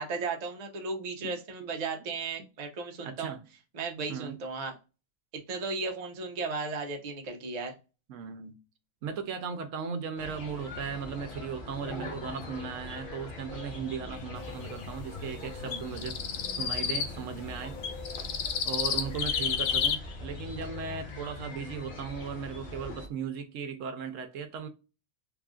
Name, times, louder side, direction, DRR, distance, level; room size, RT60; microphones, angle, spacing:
voice 1, 0.0-3.4 3.7-4.8 5.5-7.8, right 4 dB, 40° right, 0.6 m, -35 dB
voice 2, 3.0-3.4 4.1-4.4 8.1-8.6 9.0-16.2 16.5-17.8 18.6-24.7, right 6 dB, 70° right, 0.9 m, -37 dB
sound 1, 10.2-23.1, left 3 dB, 45° left, 1.0 m, -42 dB
sound 2, 15.7-17.1 17.8-20.0, left 7 dB, 75° left, 1.0 m, -30 dB
3.4 x 2.4 x 3.6 m
omnidirectional pair, 1.4 m